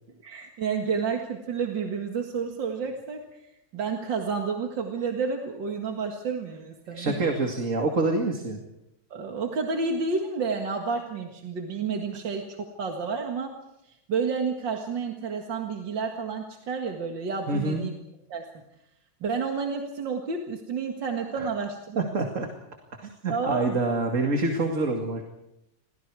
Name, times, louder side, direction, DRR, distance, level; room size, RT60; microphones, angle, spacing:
voice 1, 0.2-3.4 3.7-7.2 9.1-13.5 13.9-17.9 18.3-18.5 19.2-22.1 23.3-23.8, right 5 dB, 80° right, 2 dB, 2.6 m, -30 dB
voice 2, 6.9-8.6 17.5-17.9 21.4-21.5 22.0-22.5 23.0-25.2, right 3 dB, 45° right, 3 dB, 2.5 m, -26 dB
30.0 x 23.0 x 4.8 m, 0.86 s
omnidirectional pair, 2.0 m